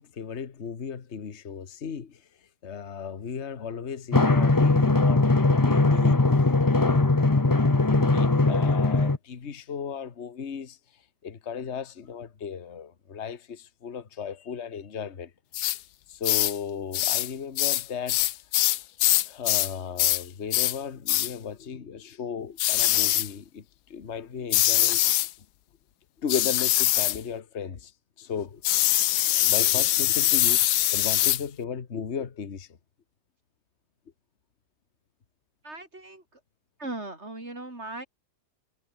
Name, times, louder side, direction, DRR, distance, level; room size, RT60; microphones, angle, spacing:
voice 1, 0.0-2.2 2.6-6.2 6.8-7.1 7.9-10.8 11.2-15.3 16.1-18.3 19.3-23.6 23.9-25.2 26.2-27.9 28.2-28.6 29.2-30.6 30.9-32.7, left 7 dB, 45° left, 1.7 m, -35 dB
Drum, 4.1-9.2, left 3 dB, 15° left, 0.8 m, -20 dB
sound 1, 15.5-15.8 16.2-16.6 16.9-17.3 17.6-19.7 20.0-20.2 20.5-20.8 21.1-21.3 22.6-23.3 24.5-25.3 26.3-27.2 28.6-31.4, left 14 dB, 75° left, 1.2 m, -23 dB
voice 2, 35.6-36.2 36.8-38.1, right 2 dB, 40° right, 5.9 m, -38 dB
omnidirectional pair, 1.7 m